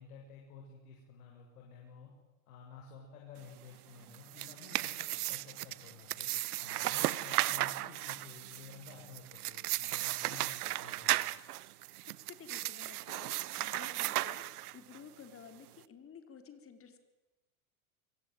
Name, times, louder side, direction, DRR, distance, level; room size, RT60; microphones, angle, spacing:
voice 1, 0.0-2.1 2.5-6.3 6.6-11.2 13.6-13.8, left 5 dB, 80° left, -1 dB, 7.9 m, -52 dB
sound 1, 4.1-15.0, right 16 dB, 80° right, 1.2 m, -35 dB
voice 2, 12.3-17.0, left 6 dB, 30° left, 7 dB, 4.5 m, -53 dB
25.5 x 23.0 x 9.6 m, 1.1 s
supercardioid pair, 115°, 44 cm